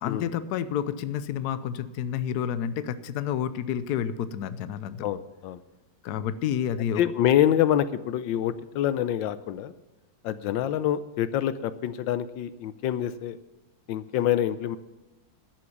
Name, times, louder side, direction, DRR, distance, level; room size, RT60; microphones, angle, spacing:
voice 1, 0.0-5.1 6.0-7.0, left 9 dB, 65° left, 13 dB, 1.1 m, -29 dB
voice 2, 5.0-5.6 7.0-9.7 10.2-13.4 13.9-14.8, left 11 dB, 85° left, 13 dB, 1.4 m, -26 dB
12.0 x 7.7 x 7.1 m, 1.0 s
omnidirectional pair, 2.0 m